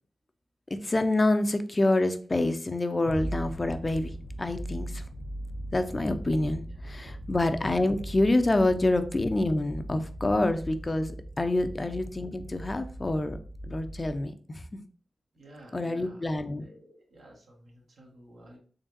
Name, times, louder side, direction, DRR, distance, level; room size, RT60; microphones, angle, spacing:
voice 1, 0.7-5.0 5.7-13.4 13.7-14.8 15.7-16.6, left 2 dB, 35° left, 9 dB, 0.5 m, -27 dB
sound 1, 3.0-14.2, right 1 dB, 85° left, 0.5 m, -39 dB
voice 2, 15.3-16.2 16.6-18.6, right 1 dB, 85° right, -1 dB, 1.2 m, -52 dB
3.9 x 3.3 x 2.5 m, 0.43 s
cardioid pair, 50°, 0 cm